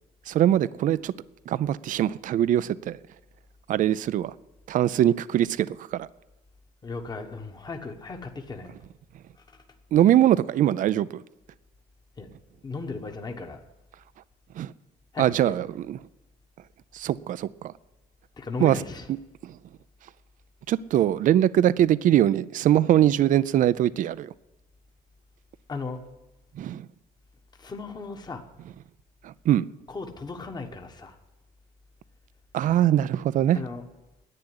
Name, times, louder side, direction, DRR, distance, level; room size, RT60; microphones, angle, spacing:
voice 1, 0.3-1.1 1.5-3.0 3.7-4.3 4.7-6.1 9.9-11.2 14.6-14.7 15.2-16.0 16.9-17.7 18.6-18.8 19.4-19.6 20.7-24.3 26.6-26.9 29.2-29.7 32.5-33.6, right 11 dB, 50° right, 0.4 m, -22 dB
voice 2, 6.8-8.7 12.2-12.3 12.6-13.6 15.1-15.5 18.4-19.0 25.7-26.0 27.6-28.4 29.9-31.1 33.5-33.8, left 3 dB, 25° left, 1.3 m, -36 dB
10.5 x 8.8 x 9.7 m
cardioid pair, 110°, 17 cm